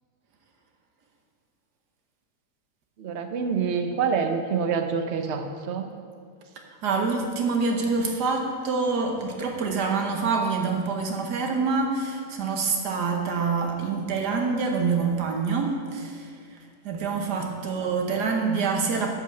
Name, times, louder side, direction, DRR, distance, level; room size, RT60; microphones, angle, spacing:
voice 1, 3.0-5.9 17.8-17.9, right 6 dB, 50° right, 6 dB, 1.0 m, -27 dB
voice 2, 6.7-19.1, right 4 dB, 80° right, 2 dB, 1.6 m, -26 dB
11.0 x 5.7 x 7.0 m, 2.2 s
omnidirectional pair, 1.7 m